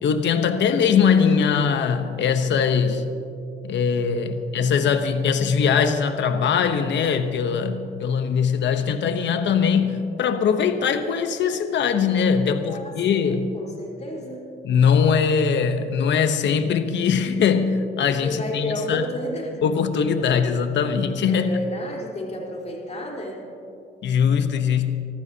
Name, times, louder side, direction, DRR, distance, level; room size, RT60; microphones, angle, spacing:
voice 1, 0.0-3.0 3.6-13.5 14.6-19.0 19.6-21.5 24.0-25.0, left 6 dB, 65° left, 8 dB, 0.9 m, -21 dB
voice 2, 12.7-14.4 18.2-19.6 20.3-20.5 21.3-23.4, left 1 dB, 35° left, -2 dB, 4.1 m, -32 dB
25.5 x 14.5 x 2.8 m, 2.6 s
cardioid pair, 90°, 20 cm